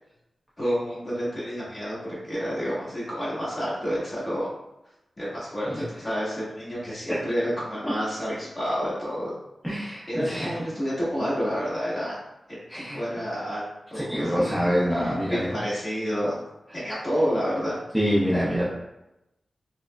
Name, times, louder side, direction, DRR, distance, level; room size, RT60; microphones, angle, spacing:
voice 1, 0.6-4.5 5.2-9.3 9.8-12.2 12.7-16.3 16.7-17.8, equal, 30° left, -8 dB, 1.3 m, -29 dB
voice 2, 9.6-10.5 12.7-13.0 13.9-15.6 17.9-18.7, equal, ahead, -9 dB, 0.6 m, -26 dB
4.7 x 2.0 x 2.3 m, 0.93 s
wide cardioid pair, 130°, 0 cm